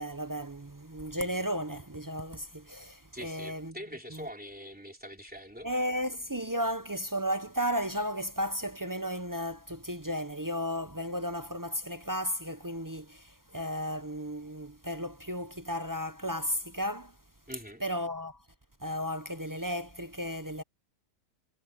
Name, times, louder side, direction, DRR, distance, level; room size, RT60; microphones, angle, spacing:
voice 1, 0.0-3.7 4.1-4.2 5.6-17.1 17.8-18.4 18.8-20.6, equal, 25° right, 0.4 m, -34 dB
voice 2, 3.1-5.7 17.5-17.8, equal, 5° right, 3.0 m, -43 dB
omnidirectional pair, 1.6 m